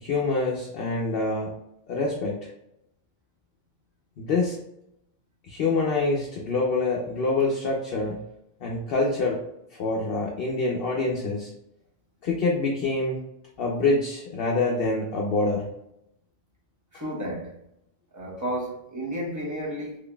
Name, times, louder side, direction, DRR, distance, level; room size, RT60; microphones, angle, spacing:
voice 1, 0.0-1.5 1.9-2.5 4.2-4.6 5.5-8.2 8.6-9.4 9.7-11.5 12.2-13.2 13.6-15.7, left 3 dB, 65° left, 0.8 m, -26 dB
voice 2, 16.9-17.6 18.1-20.0, equal, 20° right, 0.9 m, -32 dB
3.8 x 3.2 x 2.3 m
omnidirectional pair, 1.1 m